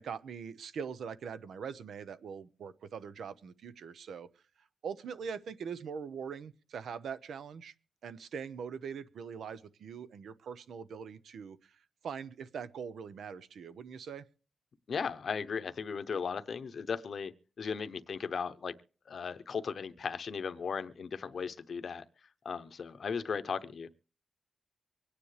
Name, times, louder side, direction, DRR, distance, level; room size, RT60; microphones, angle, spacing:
voice 1, 0.0-4.3 4.8-7.7 8.0-14.2, right 6 dB, 85° right, 14 dB, 0.9 m, -42 dB
voice 2, 14.9-18.7 19.1-22.0 22.4-23.9, left 6 dB, 50° left, 13 dB, 0.8 m, -36 dB
24.5 x 9.8 x 3.3 m, 0.40 s
wide cardioid pair, 155°, 0 cm